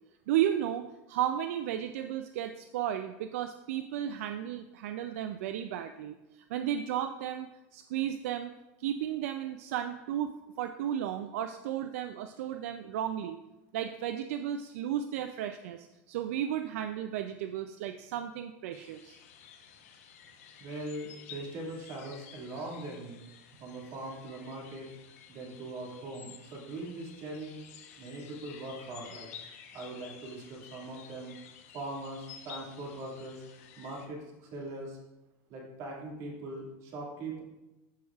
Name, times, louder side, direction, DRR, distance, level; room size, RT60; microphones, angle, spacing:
voice 1, 0.3-6.2 6.5-8.5 8.8-10.3 10.6-13.4 13.7-19.2, right 10 dB, 80° right, 7 dB, 0.4 m, -34 dB
sound 1, 18.7-34.1, left 8 dB, 80° left, 0.9 m, -52 dB
voice 2, 20.6-23.2 23.6-24.9 25.3-27.6 28.0-29.3 29.7-31.3 31.7-33.4 33.8-35.0 35.5-37.4, right 2 dB, 45° right, -2 dB, 2.1 m, -41 dB
12.5 x 4.7 x 2.4 m, 0.98 s
supercardioid pair, 150°, 8 cm